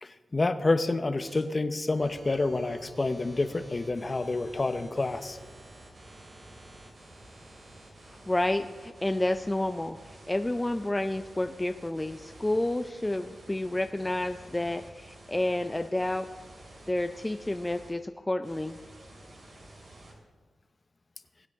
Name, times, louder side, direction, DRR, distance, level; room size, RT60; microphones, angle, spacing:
voice 1, 0.0-5.4, left 2 dB, 40° left, 11 dB, 0.8 m, -28 dB
sound 1, 1.2-1.4 1.9-17.9 18.4-20.1, right 1 dB, 60° right, 3.4 m, -51 dB
voice 2, 8.1-16.3 16.9-18.8, left 1 dB, 20° left, 8 dB, 0.5 m, -30 dB
21.5 x 8.1 x 3.6 m, 1.5 s
cardioid pair, 50°, 0 cm